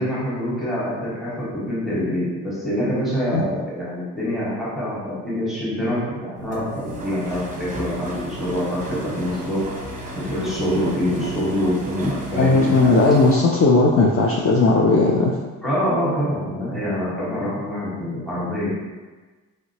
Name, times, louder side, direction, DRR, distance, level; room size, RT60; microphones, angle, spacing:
voice 1, 0.0-9.6 10.1-13.0 15.6-18.7, equal, ahead, -9 dB, 1.4 m, -25 dB
sound 1, 6.3-13.4, equal, 20° right, 0.9 m, -34 dB
voice 2, 12.4-15.4, left 3 dB, 40° left, -1 dB, 0.5 m, -16 dB
3.1 x 2.8 x 2.8 m, 1.3 s
supercardioid pair, 65°, 35 cm